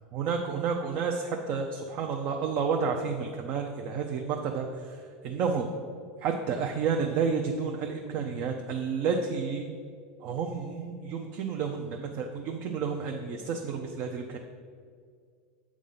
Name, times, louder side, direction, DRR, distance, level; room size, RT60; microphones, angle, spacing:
voice 1, 0.1-5.0 5.2-5.7 6.2-9.7 10.2-14.4, right 5 dB, 50° right, 2 dB, 0.6 m, -30 dB
7.5 x 3.6 x 5.6 m, 2.1 s
supercardioid pair, 115°, 4 cm